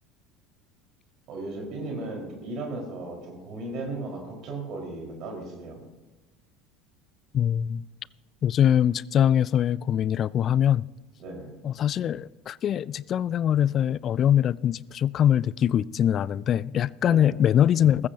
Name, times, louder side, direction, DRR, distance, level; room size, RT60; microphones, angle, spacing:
voice 1, 1.3-5.8 11.2-11.5 17.0-17.4, right 2 dB, 45° right, 4.7 m, -36 dB
voice 2, 7.3-7.8 8.4-10.8 11.6-18.1, left 10 dB, 40° left, 0.3 m, -23 dB
19.5 x 15.0 x 2.8 m
figure-of-eight pair, 70°, 0 cm